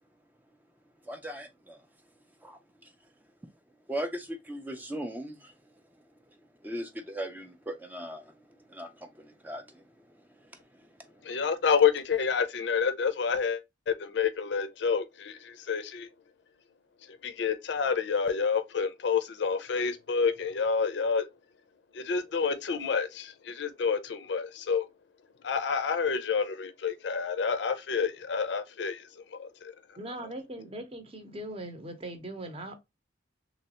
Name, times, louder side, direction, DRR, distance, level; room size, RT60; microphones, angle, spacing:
voice 1, 1.1-1.8 2.4-2.9 3.9-5.5 6.6-8.3 8.7-9.8, equal, 10° right, 0.4 m, -38 dB
voice 2, 11.2-13.6 13.9-16.1 17.1-21.3 21.9-24.9 25.4-29.7, left 6 dB, 65° left, 0.4 m, -28 dB
voice 3, 30.0-32.7, right 1 dB, 30° right, 0.7 m, -40 dB
3.2 x 3.0 x 2.8 m
head